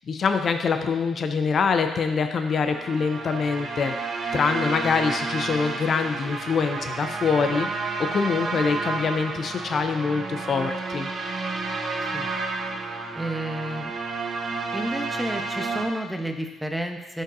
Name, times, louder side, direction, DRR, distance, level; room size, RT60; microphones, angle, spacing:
voice 1, 0.1-3.9 4.3-11.1, left 5 dB, 50° left, 7 dB, 0.5 m, -25 dB
sound 1, 2.3-15.8, right 3 dB, 50° right, 1.0 m, -31 dB
voice 2, 13.1-13.9 14.7-17.2, right 1 dB, ahead, 4 dB, 0.9 m, -31 dB
12.0 x 5.3 x 2.7 m, 1.1 s
cardioid pair, 90°, 0 cm